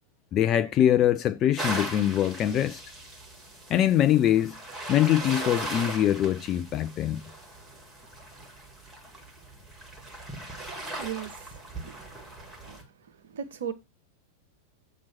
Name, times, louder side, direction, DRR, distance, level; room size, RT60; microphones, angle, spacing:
voice 1, 0.3-2.8 3.7-4.6 4.9-7.3, left 11 dB, 30° left, 0.4 m, -23 dB
sound 1, 1.6-12.8, right 1 dB, 10° right, 1.8 m, -39 dB
voice 2, 10.8-12.1 12.6-12.8 13.3-13.7, right 9 dB, 60° right, 0.8 m, -37 dB
7.3 x 3.0 x 5.8 m
figure-of-eight pair, 90°, 0 cm